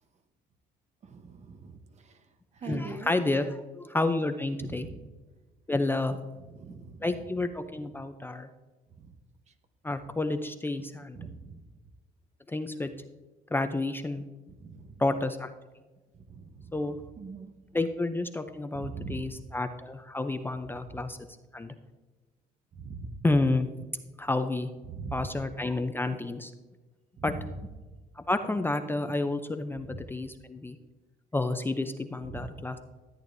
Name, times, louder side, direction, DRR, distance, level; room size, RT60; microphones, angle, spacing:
voice 1, 1.0-2.2 2.5-3.2 4.6-5.1 6.5-7.3 9.0-9.1 11.1-11.6 14.6-15.0 16.1-17.5 18.7-19.4 20.9-21.0 22.8-23.1 24.8-25.4 27.2-27.5 29.9-30.0 32.2-32.5, right 4 dB, 40° right, 1.0 m, -42 dB
voice 2, 2.6-4.9 5.7-6.2 7.0-8.5 9.8-11.2 12.5-12.9 13.5-14.2 15.0-15.5 16.7-17.0 17.7-21.2 21.5-21.7 23.2-23.7 24.2-24.7 25.1-26.5 27.2-27.4 28.2-30.8 31.3-32.8, left 2 dB, 10° left, 0.5 m, -30 dB
13.5 x 8.8 x 2.6 m
cardioid pair, 110°, 17 cm